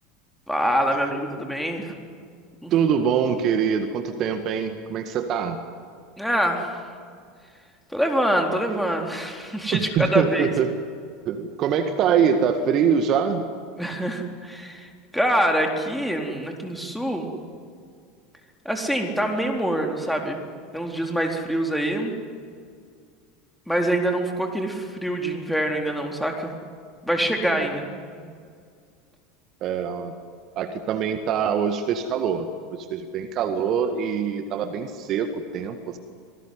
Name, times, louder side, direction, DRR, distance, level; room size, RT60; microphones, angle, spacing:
voice 1, 0.5-1.9 2.6-2.7 6.2-6.7 7.9-10.5 13.8-17.3 18.6-20.4 20.7-22.2 23.7-26.5 27.0-27.9, right 1 dB, ahead, 2 dB, 4.1 m, -25 dB
voice 2, 2.7-5.6 9.7-10.8 11.3-13.4 28.3-28.4 29.6-30.1 30.6-32.5 32.7-36.0, right 7 dB, 45° right, 8 dB, 1.8 m, -24 dB
26.0 x 19.5 x 9.7 m, 2.1 s
figure-of-eight pair, 75°, 0 cm